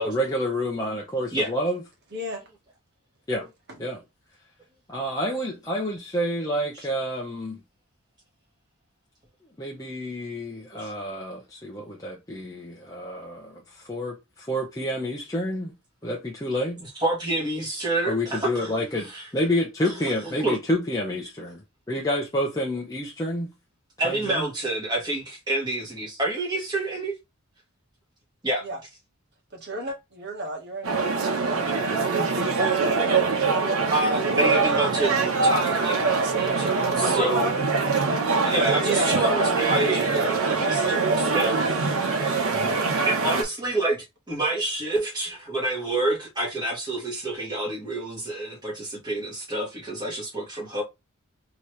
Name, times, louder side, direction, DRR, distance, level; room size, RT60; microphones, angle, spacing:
voice 1, 0.1-1.8 3.3-3.5 3.8-4.0 4.9-7.6 9.6-13.6 13.9-15.7 16.0-16.8 18.1-19.1 19.3-21.6 21.9-23.5 24.0-24.5, equal, 15° left, 0.7 m, -28 dB
voice 2, 2.1-2.4 28.6-28.8 29.5-31.0 31.4-33.4 37.0-39.4, right 1 dB, 50° right, 1.6 m, -32 dB
voice 3, 16.8-18.7 19.0-19.3 19.8-20.6 24.0-27.1 28.4-28.7 33.9-37.5 38.5-42.8 43.1-50.8, right 1 dB, 20° right, 1.7 m, -28 dB
sound 1, 30.8-43.4, right 4 dB, 75° right, 1.0 m, -23 dB
4.2 x 3.0 x 3.2 m
head